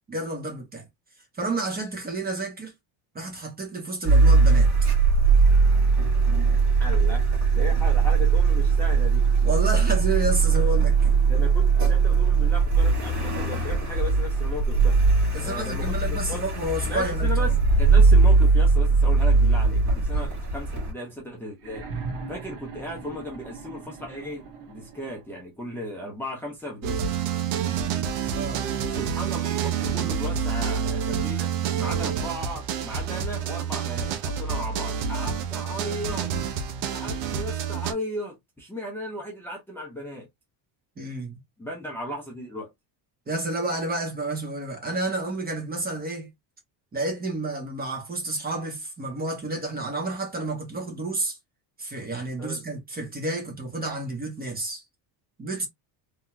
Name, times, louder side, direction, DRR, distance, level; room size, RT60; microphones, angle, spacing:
voice 1, 0.1-0.8 1.4-2.7 3.1-4.7 9.4-11.1 15.3-17.6 20.1-20.3 28.3-28.7 41.0-41.4 43.3-46.3 46.9-51.4 51.8-54.8 55.4-55.7, right 2 dB, 20° right, 1.0 m, -30 dB
Car, 4.0-20.9, right 4 dB, 35° right, 1.9 m, -20 dB
voice 2, 6.8-9.3 11.3-15.0 15.4-16.4 16.9-21.9 22.3-27.0 28.9-31.5 31.8-36.3 36.9-40.3 41.6-42.7 52.4-52.6, left 1 dB, 5° left, 0.8 m, -36 dB
sound 1, 21.6-25.4 26.6-26.7, right 4 dB, 55° right, 1.3 m, -39 dB
sound 2, 26.8-37.9, right 7 dB, 90° right, 0.9 m, -28 dB
3.8 x 2.9 x 2.2 m
cardioid pair, 150°, 50 cm